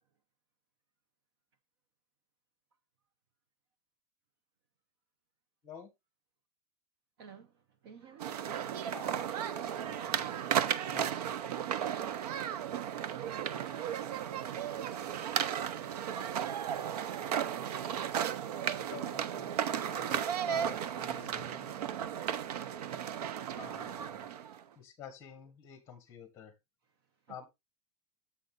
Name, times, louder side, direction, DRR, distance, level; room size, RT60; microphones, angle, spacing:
voice 1, 7.2-7.5 7.8-8.4 12.5-13.4 16.1-17.1 27.3-27.4, right 7 dB, 40° right, 0.7 m, -55 dB
sound 1, 8.2-24.6, right 9 dB, 85° right, 0.8 m, -35 dB
voice 2, 8.9-10.3 10.9-11.1 18.5-19.6 19.8-20.2 20.4-21.8 23.5-24.3 24.7-26.5 27.3-27.5, left 8 dB, 15° left, 1.6 m, -50 dB
7.8 x 5.3 x 3.9 m
supercardioid pair, 180°, 20 cm